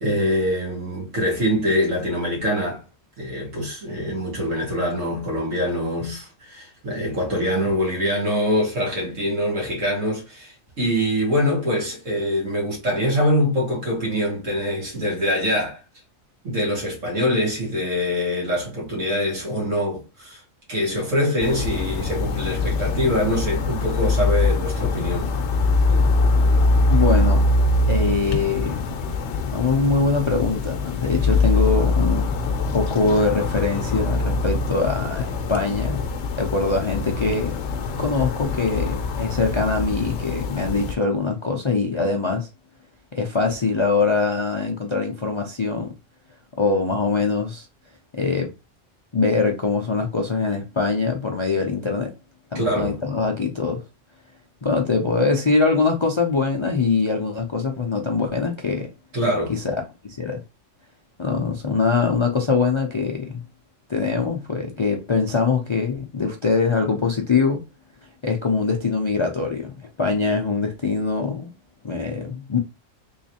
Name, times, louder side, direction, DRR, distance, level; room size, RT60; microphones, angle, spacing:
voice 1, 0.0-2.8 3.2-15.8 16.4-20.4 20.7-25.4 52.5-53.0 59.1-59.6, equal, 85° right, 2.1 m, -24 dB
sound 1, 21.4-41.0, left 3 dB, 70° left, 0.9 m, -23 dB
voice 2, 26.9-27.4 27.9-28.9 29.4-32.4 32.7-36.1 36.4-37.6 38.0-42.5 43.1-45.9 46.6-47.7 48.1-48.5 49.1-52.1 52.5-53.8 54.6-58.9 59.5-59.8 60.2-60.4 61.2-63.4 63.9-67.6 68.2-71.5 71.8-72.6, left 4 dB, 50° left, 0.3 m, -23 dB
3.7 x 3.1 x 2.8 m
omnidirectional pair, 1.3 m